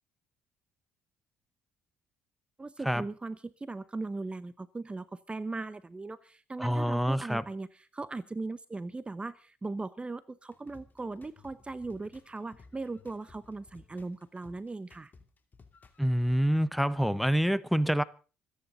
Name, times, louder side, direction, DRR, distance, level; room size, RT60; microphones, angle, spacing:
voice 1, 2.6-15.1, right 3 dB, 20° right, 0.9 m, -39 dB
voice 2, 6.6-7.4 16.0-18.0, equal, ahead, 1.0 m, -27 dB
sound 1, 10.5-16.4, left 4 dB, 35° left, 2.9 m, -57 dB
26.0 x 9.9 x 4.0 m
supercardioid pair, 65°, 5 cm